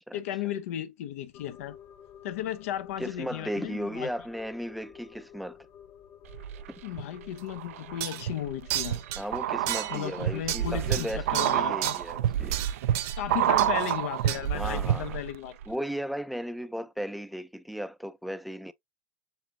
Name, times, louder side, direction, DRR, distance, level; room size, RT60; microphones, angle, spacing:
voice 1, 0.1-1.8 2.2-4.1 6.8-9.0 9.9-12.0 13.2-15.6, left 11 dB, 75° left, 0.7 m, -35 dB
sound 1, 1.3-12.0, left 9 dB, 45° left, 1.2 m, -53 dB
voice 2, 3.0-5.6 9.2-12.6 14.5-15.2 15.7-18.7, equal, ahead, 0.4 m, -35 dB
sound 2, 6.3-7.0 7.5-15.4 15.6-15.7, right 12 dB, 80° right, 0.4 m, -29 dB
sound 3, 7.4-7.5 8.0-8.3 8.7-9.2 9.7-10.1 10.5-12.0 12.5-13.2 13.6-13.9 14.3-14.4, right 14 dB, 55° right, 0.9 m, -33 dB
7.2 x 2.6 x 2.8 m
supercardioid pair, 120°, 7 cm